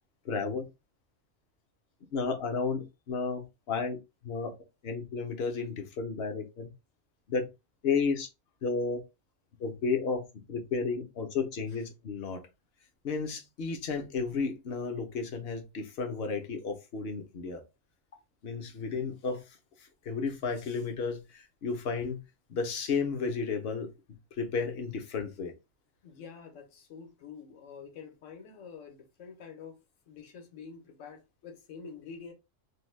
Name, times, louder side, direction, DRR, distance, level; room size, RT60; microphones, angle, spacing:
voice 1, 0.2-0.7 2.1-4.0 4.2-4.5 4.8-6.7 7.3-7.5 7.8-8.3 8.6-9.0 9.6-12.4 13.0-17.6 18.4-19.4 20.0-22.2 22.5-23.9 24.4-25.5, left 5 dB, 60° left, 0.8 m, -32 dB
voice 2, 26.0-29.8 30.1-32.3, left 6 dB, 75° left, 1.1 m, -47 dB
2.6 x 2.2 x 3.1 m
omnidirectional pair, 1.3 m